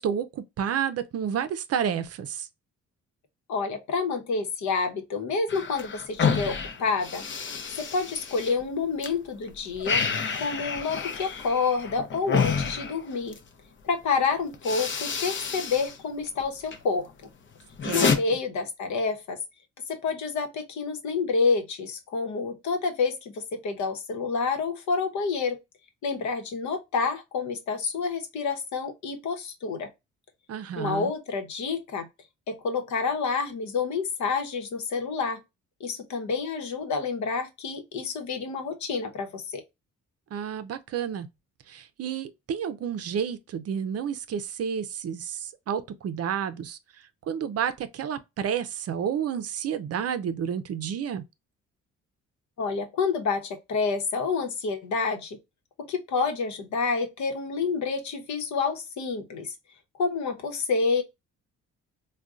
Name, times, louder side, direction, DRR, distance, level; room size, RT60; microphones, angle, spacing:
voice 1, 0.0-2.5 17.8-18.2 30.5-31.1 40.3-41.3 41.7-51.2, right 8 dB, 55° right, 0.5 m, -30 dB
voice 2, 3.5-7.2 7.8-10.0 10.3-13.4 13.8-17.1 17.9-19.4 19.9-25.6 26.0-29.9 30.8-32.1 32.5-35.4 35.8-39.6 52.6-55.4 55.8-59.5 60.0-61.0, left 4 dB, 70° left, 0.9 m, -28 dB
sound 1, 5.5-9.1 9.4-13.5 14.1-14.3 14.5-16.0 16.3-16.8 17.2-18.2, left 6 dB, 40° left, 0.7 m, -29 dB
3.6 x 2.2 x 2.4 m
cardioid pair, 90°, 30 cm